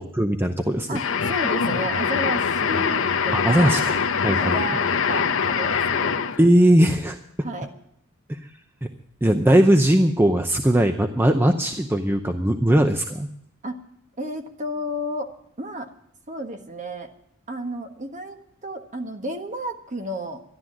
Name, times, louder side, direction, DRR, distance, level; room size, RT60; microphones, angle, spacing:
voice 1, 0.0-1.0 3.3-4.0 4.2-4.6 6.4-7.2 8.3-8.4 8.8-8.9 9.2-13.3, right 1 dB, 10° right, 5 dB, 0.7 m, -19 dB
sound 1, 0.9-6.5, left 6 dB, 65° left, 0.9 m, -23 dB
voice 2, 0.9-3.9 4.2-6.2 7.4-7.7 13.6-13.8 14.2-15.9 16.3-17.1 17.5-20.4, right 1 dB, 35° right, 5 dB, 1.4 m, -32 dB
13.0 x 11.5 x 7.5 m, 0.72 s
head